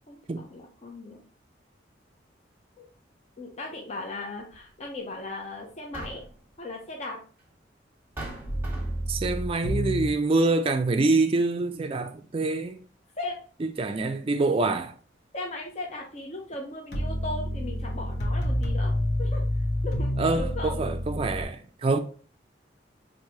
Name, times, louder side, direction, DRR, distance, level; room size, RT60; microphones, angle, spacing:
voice 1, 0.1-1.2 2.8-2.9 3.4-6.3 6.6-7.2 13.2-13.4 15.3-18.9 19.2-19.4 19.8-20.1 20.3-20.8, left 2 dB, 40° left, 0.6 m, -37 dB
sound 1, 4.5-4.7 5.7-6.5 7.5-7.6 8.2-9.2, right 1 dB, 15° right, 1.1 m, -40 dB
sound 2, 8.5-10.1 16.9-21.4, equal, 65° left, 0.9 m, -28 dB
voice 2, 9.1-12.8 13.6-14.9 20.2-22.0, right 3 dB, 30° right, 0.4 m, -25 dB
4.5 x 2.6 x 2.8 m
head